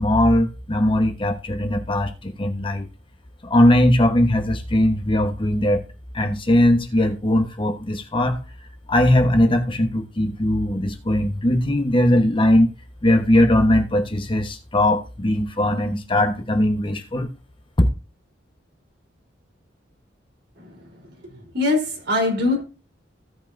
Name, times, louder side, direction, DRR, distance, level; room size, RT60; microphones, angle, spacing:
voice 1, 0.0-2.9 3.4-5.8 6.1-8.4 8.9-12.7 13.0-17.3 17.8-17.9, left 1 dB, 30° left, 1.1 m, -19 dB
voice 2, 21.5-22.6, left 2 dB, 60° right, 3.6 m, -21 dB
16.5 x 5.6 x 2.6 m
head